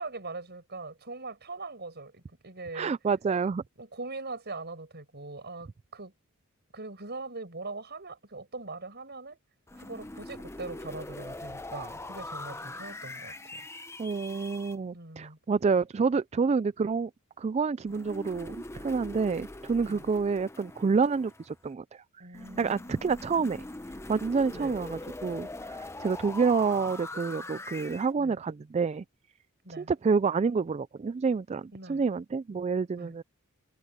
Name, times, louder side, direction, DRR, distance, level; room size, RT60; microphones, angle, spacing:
voice 1, 0.0-2.9 3.8-6.1 6.7-9.4 9.7-13.7 14.9-15.4 19.8-20.1 22.2-23.0 24.5-24.8 28.2-28.4 29.6-29.9 31.7-32.0 33.0-33.2, right 3 dB, 50° right, 7.2 m, -41 dB
voice 2, 2.7-3.6 14.0-17.1 17.4-22.0 22.6-23.6 24.1-29.0 29.8-33.2, right 5 dB, 30° right, 0.3 m, -28 dB
sound 1, 9.7-14.8 17.9-21.6 22.3-28.1, left 2 dB, 10° left, 0.8 m, -42 dB
head